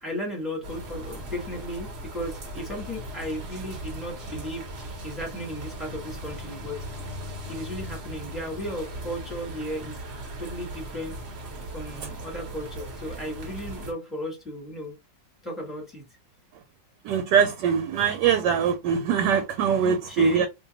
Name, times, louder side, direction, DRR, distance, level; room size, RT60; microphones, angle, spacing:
voice 1, 0.0-6.9 7.5-10.0 10.4-11.1 11.7-14.9 15.4-16.0 19.8-20.5, equal, ahead, 0.9 m, -35 dB
sound 1, 0.6-13.9, right 1 dB, 50° right, 0.8 m, -38 dB
voice 2, 17.0-20.5, right 7 dB, 75° right, 1.2 m, -22 dB
2.9 x 2.2 x 3.8 m
omnidirectional pair, 2.0 m